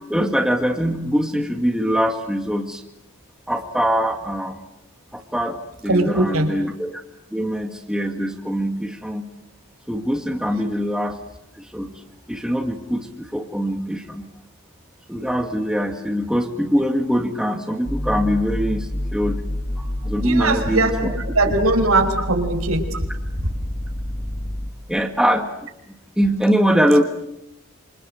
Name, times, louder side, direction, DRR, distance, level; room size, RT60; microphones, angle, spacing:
voice 1, 0.1-2.8 3.5-4.6 5.1-7.0 7.3-9.3 9.9-11.2 11.6-11.9 12.3-14.3 15.1-19.4 19.8-21.1 24.9-25.7 26.2-27.0, equal, 5° right, 4 dB, 2.0 m, -23 dB
voice 2, 5.9-6.5 20.2-23.0, right 2 dB, 80° right, 4 dB, 5.1 m, -20 dB
sound 1, 17.8-24.7, left 1 dB, 45° left, 2.2 m, -28 dB
27.5 x 27.5 x 7.9 m, 0.80 s
head